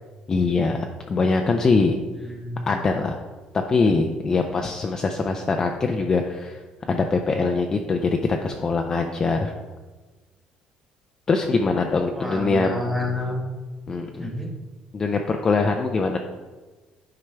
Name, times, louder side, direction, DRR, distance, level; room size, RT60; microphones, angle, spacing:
voice 1, 0.3-2.0 2.7-3.2 3.5-6.6 6.9-9.5 11.3-12.7 13.9-14.3 14.9-16.2, left 4 dB, 25° left, 3 dB, 0.4 m, -23 dB
voice 2, 2.1-2.8 12.1-13.4 14.2-14.5, left 1 dB, ahead, 0 dB, 1.3 m, -29 dB
9.3 x 4.8 x 3.3 m, 1.3 s
cardioid pair, 140°, 2 cm